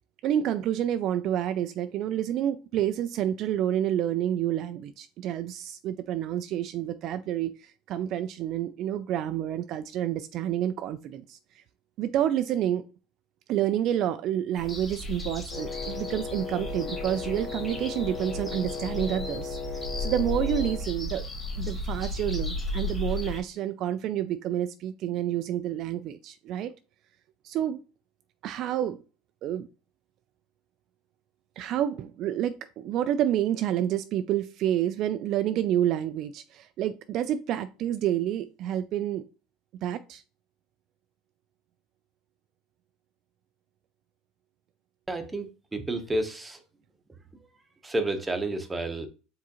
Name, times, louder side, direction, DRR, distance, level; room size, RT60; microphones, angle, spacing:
voice 1, 0.2-11.6 12.0-12.8 13.5-21.3 21.6-26.7 27.4-27.8 28.4-29.0 29.4-29.7 31.6-39.2 39.8-40.2, right 11 dB, 55° right, 0.3 m, -29 dB
sound 1, 14.5-23.4, left 1 dB, 10° left, 1.9 m, -34 dB
Wind instrument woodwind instrument, 15.5-20.9, left 5 dB, 75° left, 2.0 m, -37 dB
voice 2, 45.1-46.6 47.8-49.1, right 2 dB, 15° right, 0.9 m, -30 dB
4.8 x 3.6 x 2.9 m
supercardioid pair, 100°, 0 cm